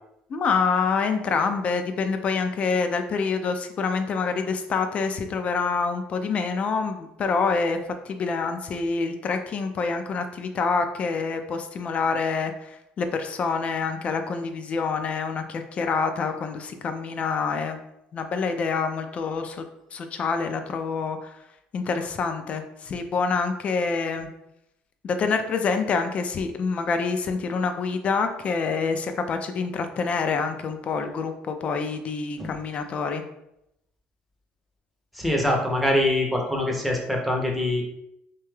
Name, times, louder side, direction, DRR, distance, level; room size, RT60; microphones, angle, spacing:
voice 1, 0.3-7.8 8.1-12.7 13.0-17.8 18.1-19.7 19.9-21.3 21.7-24.3 25.0-33.2, left 5 dB, 40° left, 7 dB, 0.3 m, -26 dB
voice 2, 35.1-37.8, left 1 dB, ahead, -1 dB, 0.6 m, -24 dB
2.7 x 2.2 x 3.1 m, 0.82 s
cardioid pair, 120°, 3 cm